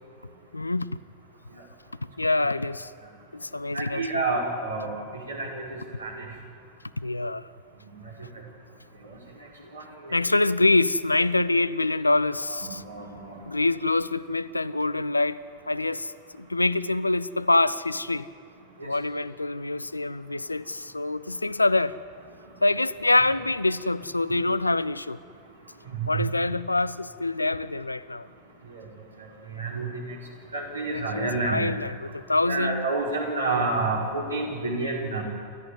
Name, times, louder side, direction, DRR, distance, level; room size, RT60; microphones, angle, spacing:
voice 1, 0.5-1.0 2.2-2.9 3.3-4.2 7.0-7.5 9.6-9.7 10.1-12.8 13.5-15.4 15.7-18.3 18.8-22.0 22.6-25.2 26.1-28.3 30.9-32.9, left 2 dB, 85° left, 0.5 m, -25 dB
voice 2, 3.7-6.3 7.9-8.0 9.0-9.2 9.7-10.2 12.5-13.4 18.8-18.9 25.9-26.3 28.7-28.9 29.5-30.2 30.5-31.6 32.4-35.2, right 3 dB, 75° right, 4.6 m, -29 dB
28.0 x 13.5 x 9.6 m
figure-of-eight pair, 90°, 0 cm